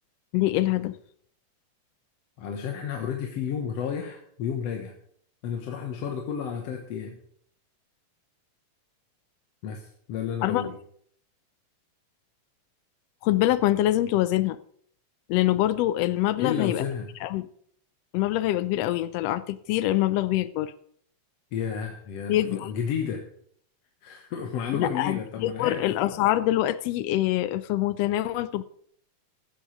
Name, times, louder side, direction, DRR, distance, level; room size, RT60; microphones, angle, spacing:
voice 1, 0.3-0.9 10.4-10.6 13.2-14.6 15.3-16.8 17.2-17.4 18.1-20.7 22.3-22.7 24.7-28.6, left 14 dB, 85° left, 14 dB, 1.4 m, -25 dB
voice 2, 2.4-4.9 5.4-7.2 9.6-10.8 16.4-17.1 21.5-23.3 24.0-25.9, left 7 dB, 65° left, 3 dB, 2.0 m, -31 dB
14.5 x 7.5 x 5.0 m, 0.64 s
omnidirectional pair, 3.4 m